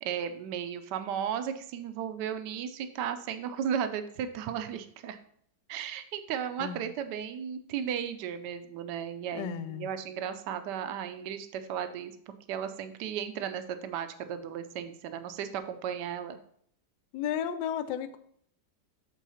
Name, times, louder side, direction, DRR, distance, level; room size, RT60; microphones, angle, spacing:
voice 1, 0.0-5.2 5.7-12.1 12.5-16.4, right 8 dB, 75° right, 10 dB, 1.2 m, -35 dB
voice 2, 9.3-9.9 17.1-18.2, left 9 dB, 80° left, 11 dB, 1.2 m, -33 dB
7.3 x 3.8 x 5.6 m, 0.65 s
omnidirectional pair, 1.9 m